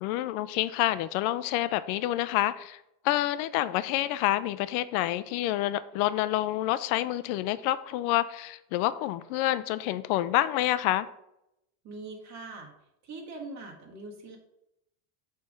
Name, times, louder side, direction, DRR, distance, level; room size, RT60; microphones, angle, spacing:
voice 1, 0.0-2.8 3.0-11.1, left 14 dB, 65° left, 15 dB, 0.5 m, -28 dB
voice 2, 11.8-12.7 13.0-14.4, right 3 dB, 35° right, 1 dB, 1.7 m, -42 dB
7.3 x 3.5 x 6.3 m, 0.83 s
cardioid pair, 160°, 46 cm